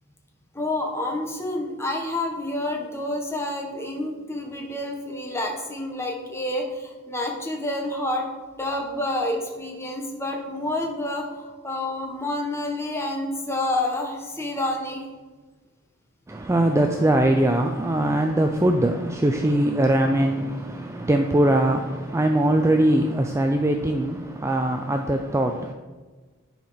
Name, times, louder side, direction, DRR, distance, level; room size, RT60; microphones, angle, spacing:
voice 1, 0.5-8.3 8.6-15.0, left 1 dB, 10° left, 1 dB, 1.2 m, -28 dB
voice 2, 16.3-25.7, right 1 dB, 15° right, 4 dB, 0.4 m, -21 dB
10.5 x 4.5 x 5.7 m, 1.3 s
head